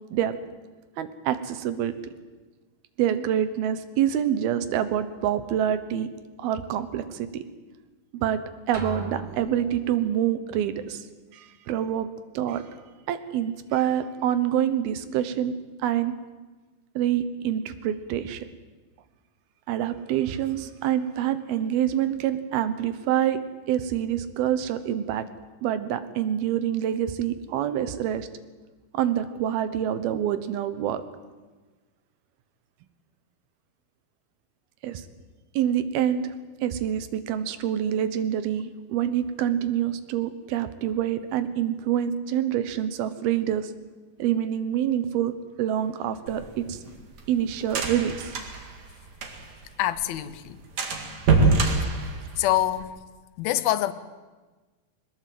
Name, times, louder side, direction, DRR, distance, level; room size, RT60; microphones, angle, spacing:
voice 1, 1.0-1.9 3.0-6.1 6.4-7.4 8.1-8.4 8.7-11.1 11.3-12.1 12.3-12.7 13.1-15.5 15.8-16.1 17.0-18.4 19.7-23.4 23.7-25.2 25.6-28.3 28.9-31.0 34.8-35.0 35.5-36.3 36.6-43.7 44.2-45.3 45.6-46.8 47.3-48.4, right 10 dB, 90° right, 11 dB, 3.1 m, -26 dB
sound 1, 8.7-10.2, right 1 dB, 25° right, 2.2 m, -38 dB
sound 2, 46.3-49.7 50.0-50.1 50.3-50.5 50.8-52.8, right 3 dB, 55° right, 3.4 m, -25 dB
voice 2, 49.8-50.6 52.4-53.1 53.4-53.9, left 13 dB, 85° left, 14 dB, 2.7 m, -25 dB
22.0 x 19.5 x 7.8 m, 1.3 s
omnidirectional pair, 4.2 m